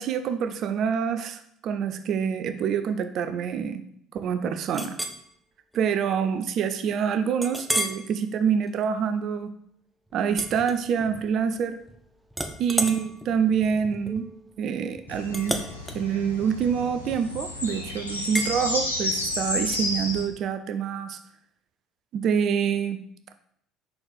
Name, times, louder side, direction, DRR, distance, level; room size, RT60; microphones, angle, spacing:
voice 1, 0.0-3.8 4.1-5.0 5.7-9.5 10.1-11.8 12.6-14.3 14.6-15.6 15.9-21.2 22.1-23.0, right 7 dB, 50° right, 10 dB, 0.6 m, -26 dB
Chink clink, 4.7-5.2 5.7-5.9 6.4-6.5 7.4-8.0 8.6-8.8 10.3-11.3 11.6-12.0 12.3-17.4 18.3-18.5, equal, ahead, 0.7 m, -32 dB
sound 1, 15.1-20.2, left 2 dB, 85° left, 0.7 m, -31 dB
5.7 x 4.4 x 4.9 m, 0.69 s
figure-of-eight pair, 55°, 0 cm